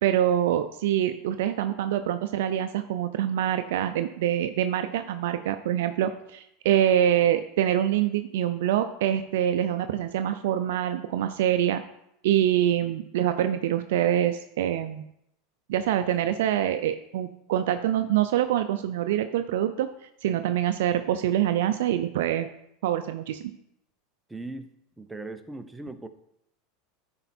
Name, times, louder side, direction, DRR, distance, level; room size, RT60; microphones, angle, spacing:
voice 1, 0.0-11.8 12.2-15.1 15.7-19.9 20.2-22.5 22.8-23.4, right 11 dB, 75° right, 8 dB, 0.4 m, -25 dB
voice 2, 24.3-24.7 25.0-26.1, right 2 dB, 10° right, 9 dB, 0.7 m, -38 dB
10.5 x 4.5 x 4.2 m, 0.78 s
supercardioid pair, 110°, 0 cm